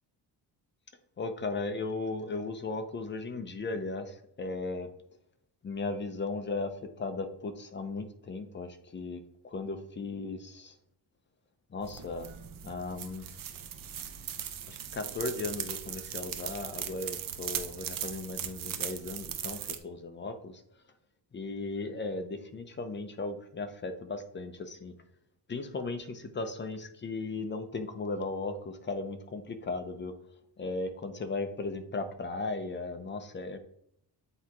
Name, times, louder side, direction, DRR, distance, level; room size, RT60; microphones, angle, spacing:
voice 1, 1.2-4.9 5.6-10.7 11.7-12.3 12.6-13.3 14.7-20.6 21.3-24.9 25.5-30.1 30.6-33.6, left 3 dB, 25° left, 8 dB, 0.5 m, -36 dB
sound 1, 11.8-19.8, right 9 dB, 55° right, 0.6 m, -39 dB
8.1 x 2.8 x 4.6 m, 0.74 s
wide cardioid pair, 170°, 42 cm